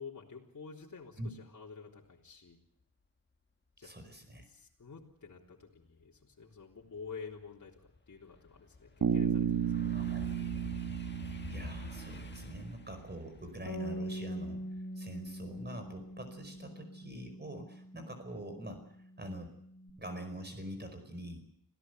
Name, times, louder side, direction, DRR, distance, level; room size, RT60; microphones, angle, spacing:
voice 1, 0.0-2.6 3.8-4.0 4.4-10.0, left 5 dB, 55° left, -2 dB, 3.7 m, -49 dB
voice 2, 3.8-4.5 9.9-10.2 11.5-14.6 15.0-18.8 19.2-19.5 20.0-21.4, right 1 dB, 30° right, 7 dB, 4.9 m, -44 dB
sound 1, 6.1-6.2 6.7-15.8 16.2-16.6, left 3 dB, 30° left, 1.6 m, -49 dB
Bass guitar, 9.0-12.9, right 9 dB, 75° right, 1.4 m, -33 dB
Bass guitar 2, 13.7-19.9, right 1 dB, 85° left, 2.4 m, -44 dB
26.5 x 16.5 x 8.0 m, 0.69 s
wide cardioid pair, 105°, 36 cm